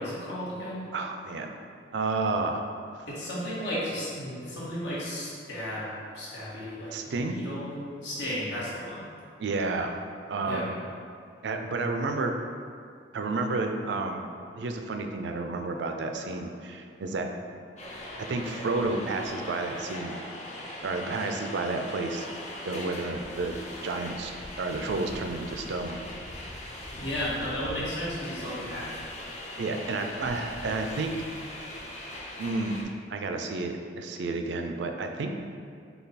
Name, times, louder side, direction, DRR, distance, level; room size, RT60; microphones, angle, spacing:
voice 1, 0.0-0.9 3.1-5.9 6.1-7.7 8.0-9.1 10.5-10.6 27.0-28.9, equal, 80° left, -8 dB, 1.4 m, -34 dB
voice 2, 0.9-1.5 1.9-2.6 6.9-7.4 9.4-10.0 10.3-10.7 11.4-12.3 13.1-14.3 14.6-17.3 18.2-20.2 20.8-22.3 22.7-23.6 23.8-24.3 24.6-26.0 29.6-31.1 32.4-32.8 33.1-35.3, right 3 dB, 80° right, 4 dB, 0.4 m, -31 dB
sound 1, 17.8-32.8, left 1 dB, 40° left, 0.6 m, -40 dB
5.4 x 2.3 x 4.0 m, 2.3 s
head